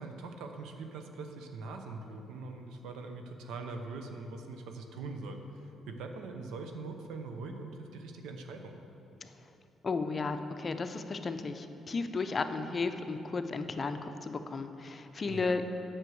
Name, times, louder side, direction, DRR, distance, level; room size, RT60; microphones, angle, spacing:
voice 1, 0.0-8.8 15.2-15.6, right 3 dB, 90° right, 5 dB, 0.9 m, -42 dB
voice 2, 9.8-15.6, left 4 dB, 35° left, 8 dB, 0.6 m, -34 dB
8.1 x 6.2 x 7.9 m, 2.9 s
cardioid pair, 90°, 0 cm